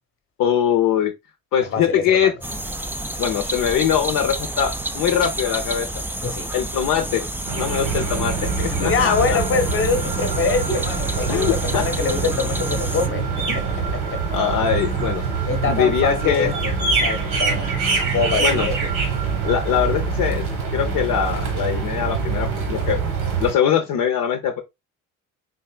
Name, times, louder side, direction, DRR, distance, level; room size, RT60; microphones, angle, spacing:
voice 1, 0.4-1.1 1.5-2.3 3.2-6.0 6.5-7.2 7.5-9.4 11.3-11.8 13.5-13.6 14.3-15.2 15.6-16.6 18.4-18.7 19.4-20.4 20.7-23.0 23.4-24.6, left 9 dB, 60° left, 0.7 m, -22 dB
voice 2, 1.6-2.3 6.2-6.5 8.7-14.2 15.5-16.8 17.0-17.8 18.0-18.9, left 4 dB, 35° left, 1.0 m, -24 dB
sound 1, 2.4-13.1, right 1 dB, 5° right, 0.4 m, -30 dB
sound 2, 7.5-23.5, right 5 dB, 80° right, 1.5 m, -24 dB
4.0 x 3.3 x 2.2 m
supercardioid pair, 75°, 36 cm